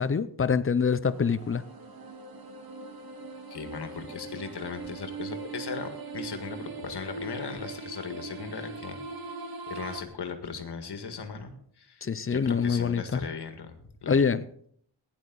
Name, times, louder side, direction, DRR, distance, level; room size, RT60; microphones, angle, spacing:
voice 1, 0.0-1.6 12.0-13.0 14.1-14.4, left 6 dB, 30° left, 0.5 m, -25 dB
sound 1, 1.1-10.0, right 4 dB, 50° right, 1.4 m, -40 dB
voice 2, 3.5-9.0 9.7-12.0 12.3-14.3, left 6 dB, 60° left, 1.9 m, -38 dB
17.0 x 10.5 x 4.0 m
wide cardioid pair, 155°, 45 cm